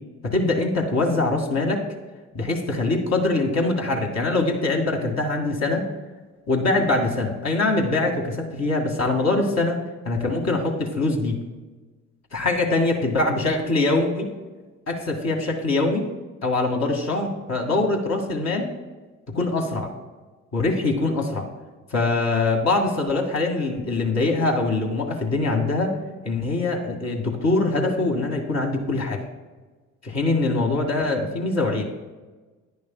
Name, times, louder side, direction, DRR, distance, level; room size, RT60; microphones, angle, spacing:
voice 1, 0.2-1.8 2.3-5.9 6.5-9.8 10.1-11.4 12.3-14.3 14.9-16.1 16.4-18.7 19.3-19.9 20.5-21.5 21.9-25.9 26.2-29.2 30.0-31.8, left 2 dB, 40° left, 1 dB, 1.9 m, -23 dB
10.5 x 9.7 x 2.2 m, 1.3 s
hypercardioid pair, 55°, 40 cm